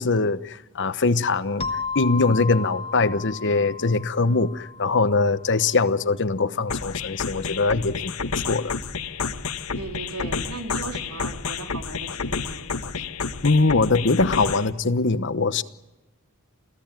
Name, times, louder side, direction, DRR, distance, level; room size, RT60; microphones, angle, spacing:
voice 1, 0.0-1.7 1.9-8.7 13.0-13.1 13.4-15.6, left 3 dB, 55° left, 13 dB, 1.1 m, -22 dB
sound 1, 1.6-6.0, left 4 dB, 25° left, 1.7 m, -34 dB
sound 2, 6.7-14.7, left 5 dB, 85° left, 1.5 m, -30 dB
voice 2, 9.8-12.7, right 2 dB, 80° right, 4 dB, 3.7 m, -37 dB
29.0 x 16.5 x 9.1 m, 1.1 s
head